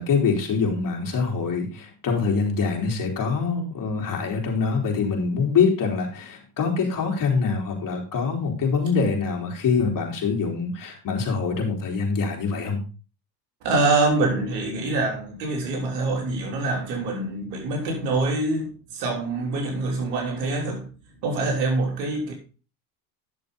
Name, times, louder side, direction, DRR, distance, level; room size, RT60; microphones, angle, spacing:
voice 1, 0.0-12.8, left 5 dB, 40° left, 3.6 m, -24 dB
voice 2, 13.6-20.9 21.2-22.3, right 2 dB, 85° right, 3.4 m, -25 dB
10.5 x 6.8 x 3.9 m
supercardioid pair, 95°, 49 cm